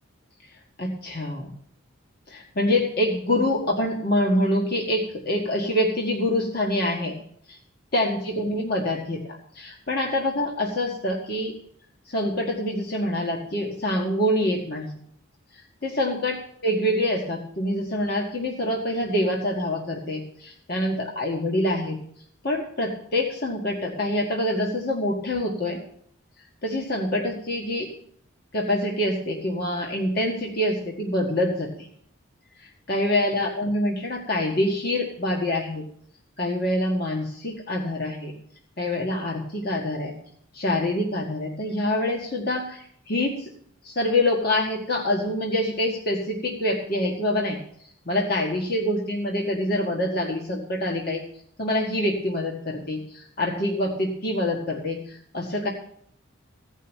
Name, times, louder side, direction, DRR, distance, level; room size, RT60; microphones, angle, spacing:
voice 1, 0.8-1.5 2.3-7.2 7.5-7.6 7.9-11.5 12.1-14.9 15.8-22.0 22.4-25.8 26.6-27.9 28.5-31.9 32.6-35.8 36.4-38.3 38.8-40.1 40.5-43.5 43.8-47.6 48.1-51.2 51.6-55.7, left 1 dB, 50° left, -1 dB, 1.8 m, -26 dB
16.0 x 5.5 x 9.1 m, 0.64 s
head